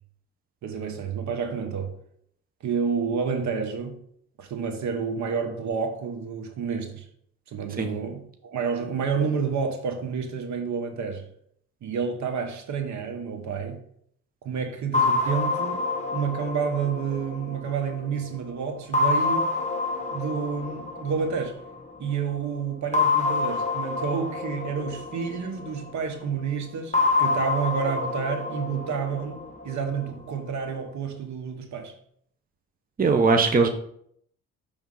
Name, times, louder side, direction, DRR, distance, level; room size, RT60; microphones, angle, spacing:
voice 1, 0.6-1.9 2.6-4.0 4.4-7.1 7.5-11.2 11.8-13.8 14.4-15.9 16.1-19.5 20.1-21.6 22.0-31.9, right 6 dB, 70° right, 1.3 m, -29 dB
sound 1, 14.9-18.3 18.9-21.9 22.9-26.0 26.9-30.0, left 3 dB, 25° left, 1.2 m, -27 dB
voice 2, 33.0-33.7, right 4 dB, 30° right, 0.8 m, -19 dB
6.2 x 3.6 x 5.4 m
cardioid pair, 90°, 30 cm